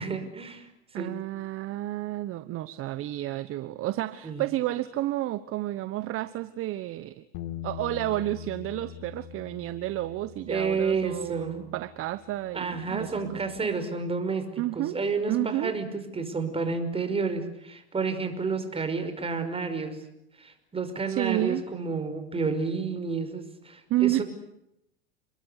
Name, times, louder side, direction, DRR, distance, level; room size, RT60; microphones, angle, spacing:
voice 1, 0.0-1.1 4.2-4.4 10.5-11.7 12.5-15.9 16.1-20.0 20.4-24.2, right 4 dB, 20° right, 8 dB, 5.6 m, -30 dB
voice 2, 0.9-7.2 7.6-13.4 14.6-15.0 15.3-15.7 21.1-21.6 23.9-24.2, right 16 dB, 45° right, 14 dB, 1.2 m, -30 dB
Bass guitar, 7.3-13.6, left 10 dB, 65° left, 2.3 m, -43 dB
29.0 x 22.0 x 8.3 m, 0.81 s
hypercardioid pair, 105°, 32 cm